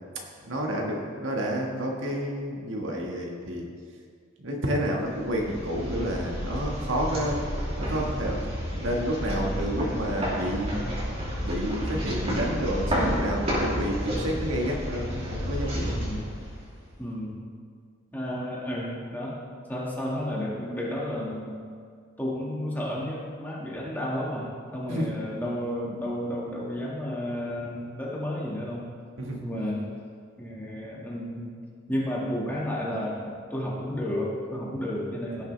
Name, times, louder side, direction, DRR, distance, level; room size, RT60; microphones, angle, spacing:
voice 1, 0.2-3.7 4.4-7.4 7.8-8.4 8.8-10.8 11.4-16.0 24.9-25.1 29.2-29.4 35.4-35.5, equal, 85° right, -1 dB, 1.6 m, -30 dB
sound 1, 4.9-17.0, equal, 30° right, 3.0 m, -31 dB
voice 2, 15.9-16.3 17.0-17.4 18.1-19.4 19.7-21.6 22.2-28.9 29.4-29.9 30.4-31.5 31.9-35.4, left 1 dB, 10° left, -5 dB, 1.8 m, -32 dB
17.0 x 7.2 x 3.3 m, 2.1 s
head